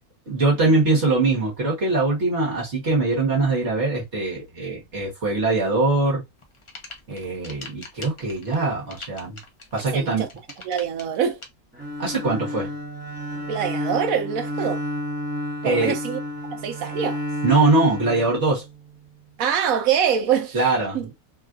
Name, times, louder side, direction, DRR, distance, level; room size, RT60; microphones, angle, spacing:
voice 1, 0.3-6.2 7.1-9.4 9.7-10.3 12.0-12.7 15.6-15.9 17.4-18.6 20.5-21.1, right 3 dB, 50° right, 1.4 m, -22 dB
sound 1, 6.4-11.5, left 3 dB, 40° left, 0.4 m, -41 dB
voice 2, 9.9-10.3 10.6-11.4 13.5-14.8 15.6-16.2 16.5-17.2 19.4-20.6 20.9-21.1, right 8 dB, 70° right, 1.0 m, -24 dB
Bowed string instrument, 11.7-18.9, equal, 5° right, 0.8 m, -31 dB
3.7 x 2.3 x 2.4 m
omnidirectional pair, 1.6 m